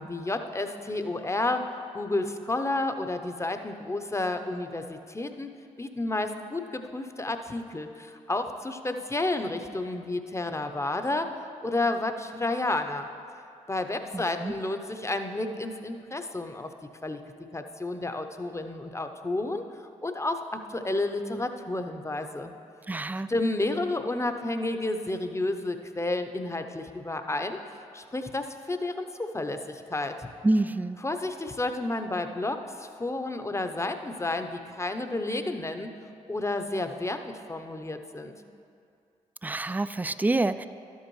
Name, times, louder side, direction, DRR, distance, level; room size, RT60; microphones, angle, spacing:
voice 1, 0.0-1.7 1.9-13.1 13.7-16.7 17.0-17.2 17.5-19.7 20.0-22.5 23.3-27.6 27.9-30.3 31.0-35.9 36.3-38.3, left 2 dB, 20° left, 7 dB, 0.7 m, -31 dB
voice 2, 14.1-14.5 22.9-23.3 30.4-31.0 39.4-40.7, right 2 dB, 10° right, 13 dB, 0.3 m, -27 dB
12.0 x 8.2 x 3.1 m, 2.4 s
hypercardioid pair, 40°, 16 cm